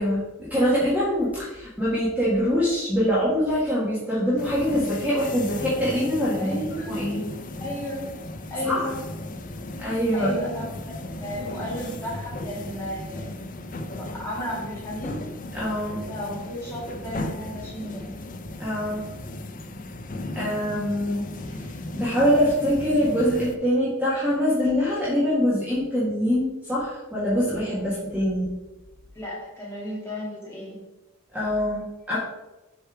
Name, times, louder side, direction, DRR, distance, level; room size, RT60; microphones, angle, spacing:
voice 1, 0.0-6.5 6.9-7.2 8.6-8.8 9.8-10.3 15.5-16.1 18.6-19.0 20.3-21.3 21.9-28.5 31.3-32.2, equal, 5° right, -9 dB, 1.7 m, -24 dB
sound 1, 4.4-23.6, left 1 dB, 40° left, 0.5 m, -36 dB
voice 2, 6.4-7.1 7.6-8.1 8.5-9.0 10.1-13.3 13.9-15.2 16.1-18.1 29.1-30.8, equal, 10° left, -6 dB, 2.5 m, -33 dB
6.7 x 4.5 x 4.8 m, 1.1 s
head